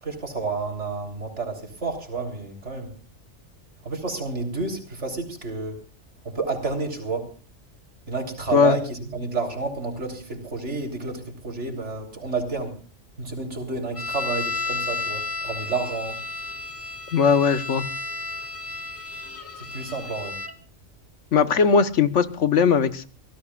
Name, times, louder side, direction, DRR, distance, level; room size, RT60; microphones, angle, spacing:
voice 1, 0.0-2.9 3.8-5.8 6.2-7.3 8.1-12.7 13.2-16.2 19.6-20.4, right 3 dB, 65° right, 4 dB, 3.9 m, -30 dB
sound 1, 13.9-20.5, left 3 dB, 10° left, 1.7 m, -32 dB
voice 2, 17.1-17.9 21.3-23.1, left 6 dB, 75° left, 12 dB, 1.4 m, -19 dB
25.5 x 17.0 x 2.4 m, 0.38 s
omnidirectional pair, 1.3 m